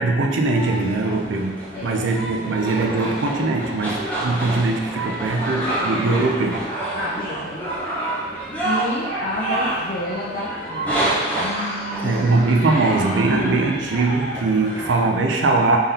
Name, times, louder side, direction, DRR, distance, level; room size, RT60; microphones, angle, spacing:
voice 1, 0.0-6.7 12.0-15.8, right 3 dB, 65° right, 2 dB, 0.4 m, -21 dB
sound 1, 0.5-15.0, right 1 dB, 10° left, 0.6 m, -28 dB
voice 2, 6.9-7.6 8.6-12.2, left 1 dB, 45° left, -7 dB, 0.5 m, -29 dB
3.7 x 3.5 x 2.8 m, 1.4 s
head